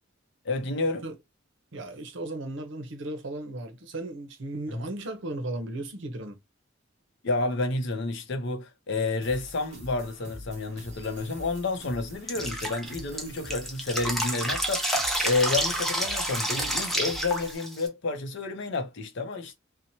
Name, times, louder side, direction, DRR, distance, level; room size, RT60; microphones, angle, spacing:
voice 1, 0.4-1.1 4.7-4.9 7.2-19.6, left 3 dB, 60° left, 0.6 m, -30 dB
voice 2, 1.7-6.4, right 2 dB, 65° right, 0.7 m, -36 dB
sound 1, 9.2-17.6, equal, 40° right, 1.1 m, -46 dB
Drip, 12.3-17.9, equal, ahead, 0.6 m, -29 dB
2.9 x 2.1 x 2.6 m
head